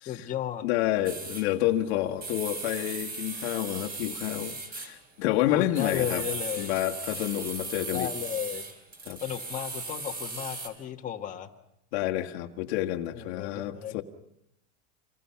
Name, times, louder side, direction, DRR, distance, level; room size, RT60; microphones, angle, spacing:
voice 1, 0.1-0.6 5.5-6.7 7.9-8.6 9.2-11.5 13.1-14.0, left 10 dB, 20° left, 1 dB, 1.7 m, -34 dB
voice 2, 0.6-6.3 6.6-8.1 9.1-9.2 11.9-14.0, left 14 dB, 65° left, 3 dB, 1.7 m, -29 dB
sound 1, 1.0-1.5 2.2-4.9 5.7-10.7, right 3 dB, 25° right, 4.2 m, -37 dB
28.5 x 23.5 x 5.8 m, 0.80 s
supercardioid pair, 140°, 35 cm